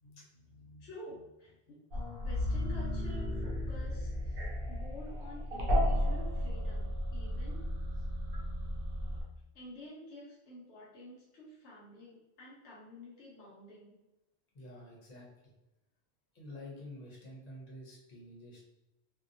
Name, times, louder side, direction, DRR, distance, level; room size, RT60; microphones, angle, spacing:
voice 1, 0.0-4.4 4.7-7.6 9.5-13.9, left 1 dB, 80° left, -5 dB, 1.0 m, -50 dB
sound 1, 1.9-9.2, equal, 60° right, 0.8 m, -34 dB
voice 2, 14.5-15.3 16.3-18.7, left 1 dB, 40° left, -3 dB, 0.8 m, -48 dB
2.7 x 2.1 x 2.5 m, 0.96 s
omnidirectional pair, 1.1 m